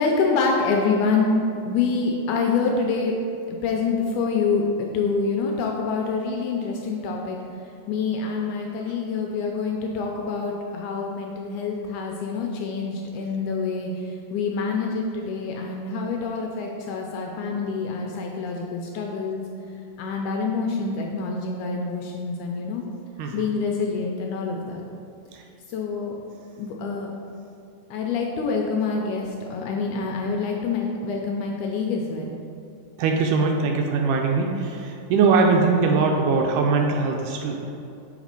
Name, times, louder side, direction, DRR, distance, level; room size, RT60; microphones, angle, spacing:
voice 1, 0.0-1.4 1.7-3.1 3.5-7.4 7.9-13.9 14.3-19.4 20.0-22.8 23.3-24.8 25.7-26.2 26.6-27.1 27.9-32.3, left 4 dB, 80° left, 1 dB, 1.8 m, -26 dB
voice 2, 23.2-23.5 25.3-25.4 33.0-37.6, right 4 dB, 80° right, 2 dB, 2.0 m, -21 dB
6.6 x 4.0 x 5.1 m, 2.7 s
omnidirectional pair, 3.9 m